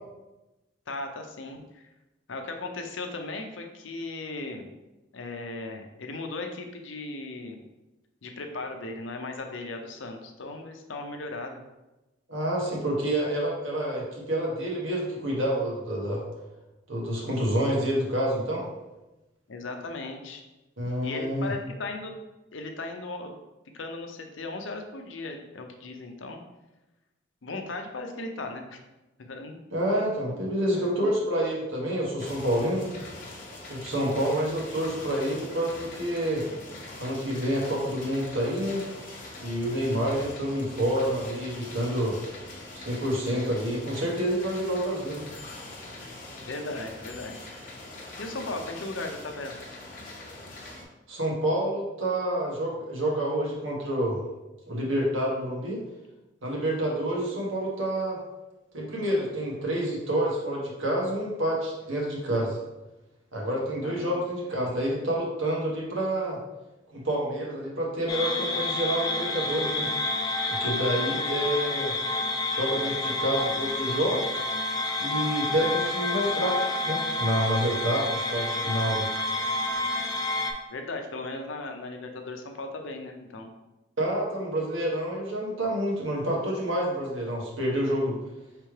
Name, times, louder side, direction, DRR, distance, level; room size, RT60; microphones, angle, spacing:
voice 1, 0.9-1.8 2.3-4.7 5.1-7.6 8.2-11.6 19.5-20.4 21.0-22.1 22.5-23.3 23.7-26.4 27.4-28.8 29.3-29.5 30.3-30.4 46.4-47.4 48.2-49.6 63.8-64.2 80.7-83.5, left 2 dB, 80° left, 4 dB, 0.6 m, -37 dB
voice 2, 12.3-16.2 16.9-18.7 20.8-21.5 29.7-32.8 33.7-36.4 37.0-38.8 39.4-42.2 42.7-45.3 51.1-54.2 54.7-55.8 56.4-58.2 58.7-62.6 63.3-66.4 66.9-69.9 70.5-71.9 72.5-74.2 75.0-79.0 84.0-88.2, right 1 dB, 90° right, -3 dB, 1.3 m, -28 dB
sound 1, 32.2-50.8, left 2 dB, 40° left, 0.8 m, -43 dB
sound 2, 68.1-80.5, left 2 dB, 20° left, 0.3 m, -29 dB
3.3 x 3.2 x 4.7 m, 1.0 s
head